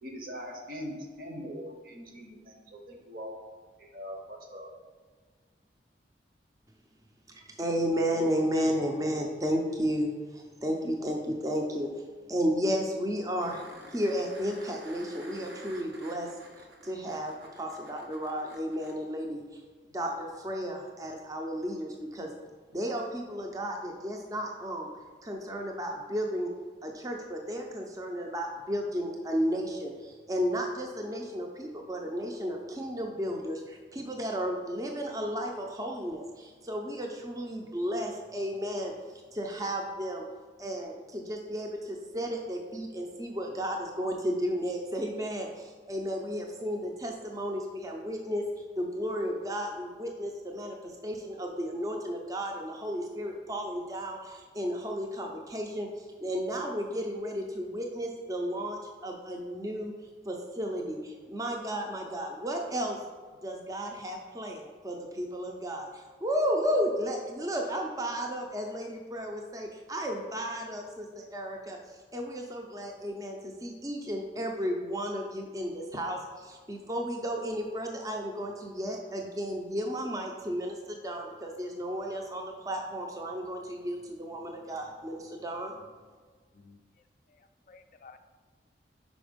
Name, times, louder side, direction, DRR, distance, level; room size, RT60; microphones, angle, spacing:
voice 1, 0.0-3.4 3.8-4.7, equal, 50° right, 1 dB, 1.0 m, -41 dB
voice 2, 7.3-11.9 12.3-13.6 13.9-16.3 16.6-19.6 19.9-22.3 22.7-24.9 25.2-26.5 26.8-40.2 40.6-48.5 48.8-59.9 60.2-63.0 63.4-85.8, equal, 20° right, 2 dB, 0.5 m, -33 dB
sound 1, 13.4-18.9 21.6-21.7, right 1 dB, 85° right, 1.0 m, -50 dB
voice 3, 87.3-88.2, left 4 dB, 45° left, 8 dB, 0.3 m, -54 dB
5.1 x 4.3 x 5.0 m, 1.5 s
head